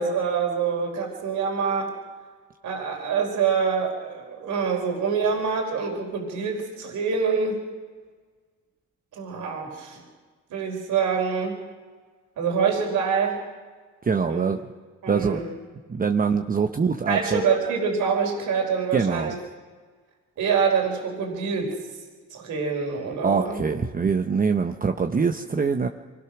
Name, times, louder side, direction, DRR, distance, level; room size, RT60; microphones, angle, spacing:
voice 1, 0.0-1.9 2.6-7.6 9.1-10.0 10.5-11.6 12.4-13.4 14.3-14.5 15.0-15.5 17.1-19.3 20.4-21.7 22.3-23.7, right 6 dB, 75° right, 1 dB, 4.4 m, -25 dB
voice 2, 14.0-14.6 15.1-15.4 15.9-17.4 18.9-19.3 23.2-25.9, right 5 dB, 30° right, 5 dB, 0.9 m, -23 dB
25.0 x 19.0 x 6.1 m, 1.5 s
cardioid pair, 90°, 30 cm